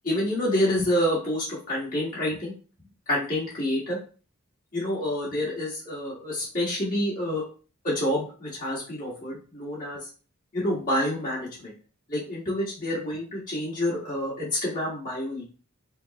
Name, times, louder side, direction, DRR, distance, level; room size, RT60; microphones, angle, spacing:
voice 1, 0.0-2.5 3.1-4.0 4.7-7.4 7.8-10.0 10.5-11.7 12.1-15.5, left 1 dB, 40° left, -8 dB, 1.5 m, -28 dB
5.5 x 2.0 x 2.8 m, 0.37 s
head